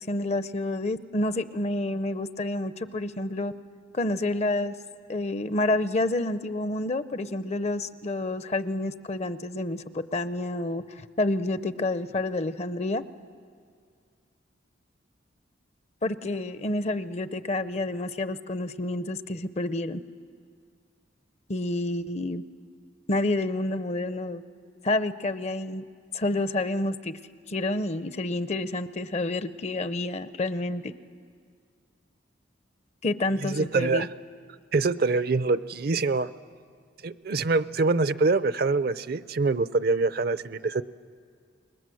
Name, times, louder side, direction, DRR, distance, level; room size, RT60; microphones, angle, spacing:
voice 1, 0.1-3.5 3.9-4.8 5.1-13.0 16.0-20.0 21.5-22.4 23.1-24.4 24.8-25.9 26.1-27.1 27.5-30.9 33.0-34.1, left 2 dB, 35° left, 13 dB, 0.6 m, -29 dB
voice 2, 33.4-34.1 34.7-36.3 37.0-40.8, right 3 dB, 55° right, 15 dB, 0.5 m, -25 dB
28.0 x 21.0 x 7.7 m, 2.1 s
head